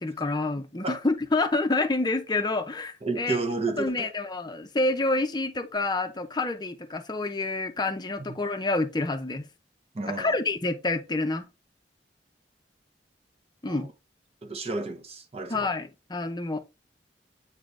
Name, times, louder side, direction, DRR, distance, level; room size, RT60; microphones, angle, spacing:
voice 1, 0.0-3.4 3.8-9.5 10.1-11.5 13.6-13.9 15.5-16.6, left 2 dB, 25° left, 0.6 m, -28 dB
voice 2, 3.0-4.1 8.2-8.3 9.9-10.3 13.7-13.9 14.4-15.7, right 3 dB, 35° right, 0.8 m, -31 dB
8.1 x 3.9 x 3.2 m
head